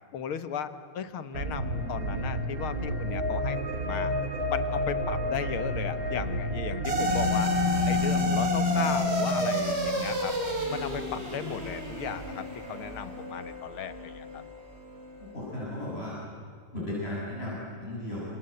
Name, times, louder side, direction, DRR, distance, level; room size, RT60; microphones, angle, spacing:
voice 1, 0.1-4.1 4.5-7.5 7.9-10.3 10.7-14.4, left 8 dB, 75° left, 11 dB, 2.2 m, -36 dB
sound 1, 1.3-8.2, equal, 45° right, 2.3 m, -31 dB
sound 2, 6.8-15.4, left 1 dB, 30° right, 4.2 m, -29 dB
voice 2, 15.3-16.1 16.7-18.2, left 1 dB, 25° left, -7 dB, 7.5 m, -35 dB
28.0 x 26.5 x 7.9 m, 2.2 s
omnidirectional pair, 2.4 m